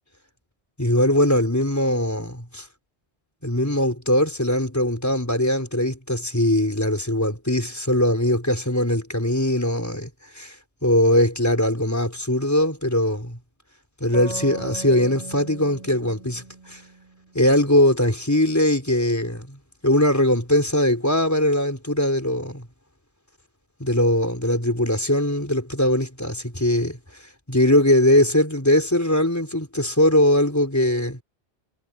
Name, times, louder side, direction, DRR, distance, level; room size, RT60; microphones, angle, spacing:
voice 1, 0.8-2.7 3.4-10.1 10.3-10.6 10.8-13.4 14.0-16.8 17.3-19.6 19.8-22.7 23.8-27.0 27.5-31.2, left 1 dB, 15° left, 4.5 m, -21 dB
sound 1, 14.1-17.6, right 3 dB, 35° right, 5.9 m, -38 dB
omnidirectional pair, 1.1 m